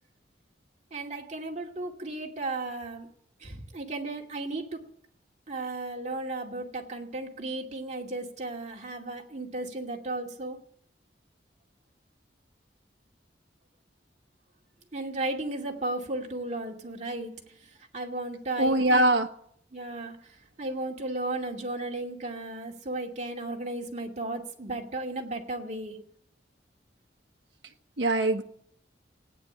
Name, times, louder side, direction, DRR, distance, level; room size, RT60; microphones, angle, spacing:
voice 1, 0.9-3.1 3.4-4.9 5.5-10.6 14.9-19.0 19.7-26.0, right 2 dB, 40° right, 0 dB, 2.5 m, -35 dB
voice 2, 18.6-19.3 28.0-28.4, right 1 dB, 70° right, 2 dB, 1.3 m, -22 dB
17.0 x 9.8 x 8.0 m, 0.68 s
head